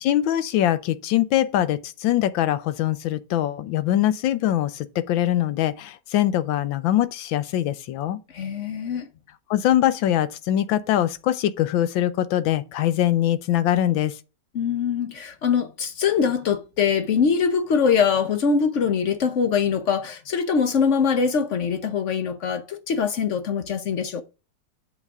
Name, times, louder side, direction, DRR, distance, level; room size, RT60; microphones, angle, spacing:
voice 1, 0.0-8.2 9.5-14.1, left 12 dB, 90° left, 1.4 m, -22 dB
voice 2, 8.3-9.1 14.5-24.2, left 6 dB, 55° left, 0.8 m, -23 dB
8.2 x 7.4 x 3.6 m
omnidirectional pair, 2.1 m